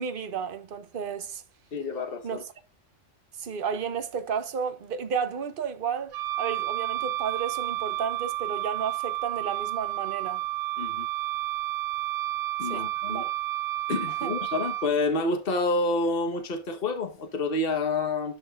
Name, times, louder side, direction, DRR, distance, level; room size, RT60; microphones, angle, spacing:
voice 1, 0.0-1.4 2.2-2.4 3.4-10.4 12.7-13.3 14.2-14.3, right 6 dB, 50° right, 1.1 m, -32 dB
voice 2, 1.7-2.4 10.8-11.1 12.6-13.2 13.9-18.4, left 2 dB, 50° left, 1.4 m, -28 dB
Wind instrument woodwind instrument, 6.1-14.9, right 15 dB, 85° right, 1.0 m, -31 dB
11.5 x 6.1 x 2.4 m
omnidirectional pair, 1.3 m